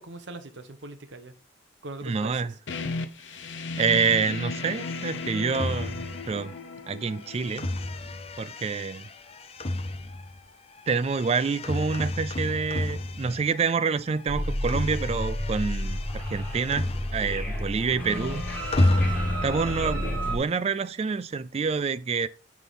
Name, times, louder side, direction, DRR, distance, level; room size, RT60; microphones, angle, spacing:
voice 1, 0.0-1.3 1.8-2.5, right 2 dB, 65° right, 0.9 m, -41 dB
voice 2, 2.0-2.5 3.8-6.5 6.9-7.7 8.4-9.1 10.9-18.5 18.8-18.9 19.4-22.3, right 5 dB, 30° right, 0.3 m, -27 dB
sound 1, 2.7-8.1, left 3 dB, 70° left, 0.8 m, -35 dB
sound 2, 4.5-13.8 14.1-17.5 17.8-19.7, left 1 dB, 30° left, 0.6 m, -32 dB
sound 3, 14.3-20.4, equal, 10° left, 2.6 m, -31 dB
9.1 x 3.7 x 4.0 m
head